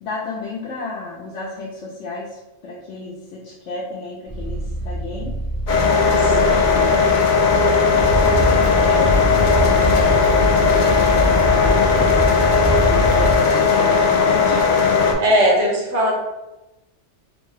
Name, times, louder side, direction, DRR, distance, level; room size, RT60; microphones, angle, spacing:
voice 1, 0.0-5.3 6.0-7.1 8.0-9.3 9.5-12.2 12.7-14.7, left 3 dB, 85° left, -4 dB, 0.9 m, -33 dB
sound 1, 4.3-11.6, right 1 dB, 15° right, 1.0 m, -30 dB
sound 2, 5.7-15.1, left 5 dB, 55° left, 0.6 m, -17 dB
voice 2, 6.1-6.8 15.2-16.1, equal, 80° right, -2 dB, 1.3 m, -19 dB
Fire, 8.0-13.4, equal, 65° right, 0.9 m, -22 dB
3.2 x 2.7 x 3.1 m, 0.98 s
omnidirectional pair, 1.2 m